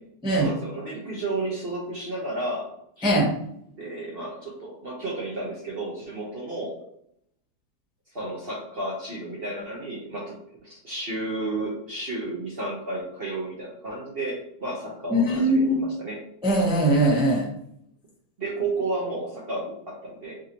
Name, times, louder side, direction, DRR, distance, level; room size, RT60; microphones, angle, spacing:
voice 1, 0.3-2.7 3.0-3.1 3.7-6.7 8.1-10.4 10.6-16.2 18.4-20.3, right 2 dB, 45° right, -4 dB, 0.8 m, -32 dB
voice 2, 15.1-15.8 16.4-17.5, right 1 dB, 5° right, -5 dB, 0.5 m, -21 dB
5.1 x 2.9 x 2.8 m, 0.71 s
omnidirectional pair, 2.0 m